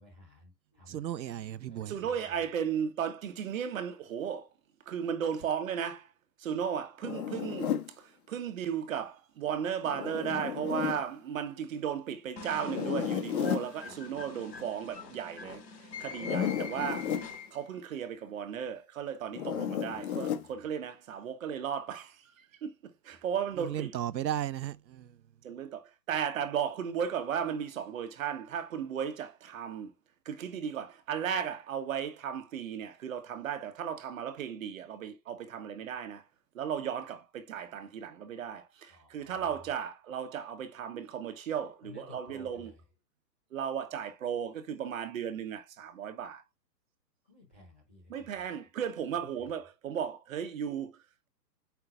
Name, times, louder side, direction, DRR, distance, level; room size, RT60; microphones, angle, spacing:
voice 1, 0.0-1.0 1.7-1.8 38.9-39.3 41.8-42.5 47.3-48.3, left 2 dB, 10° left, 0.5 m, -54 dB
voice 2, 0.9-2.0 23.6-25.2, right 11 dB, 85° right, 0.7 m, -35 dB
voice 3, 1.9-4.5 4.9-6.1 6.4-17.2 17.5-23.9 25.4-29.9 30.2-36.2 36.5-42.7 43.5-46.4 48.1-51.3, right 8 dB, 50° right, 1.3 m, -35 dB
Zipper (clothing), 7.0-7.9 9.8-11.0 12.6-13.7 16.1-17.3 19.3-20.5, left 9 dB, 60° left, 1.4 m, -33 dB
sound 1, 12.4-17.8, left 4 dB, 80° left, 3.3 m, -45 dB
7.7 x 5.7 x 2.2 m
hypercardioid pair, 155°, 50 cm